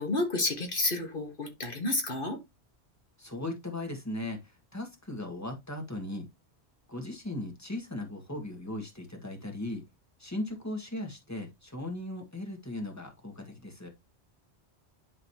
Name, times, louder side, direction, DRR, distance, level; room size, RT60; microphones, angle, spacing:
voice 1, 0.0-2.4, left 2 dB, 50° left, 1.6 m, -30 dB
voice 2, 3.2-6.3 6.9-9.8 10.2-13.9, left 1 dB, 15° left, 1.9 m, -38 dB
11.5 x 3.9 x 2.9 m
omnidirectional pair, 1.2 m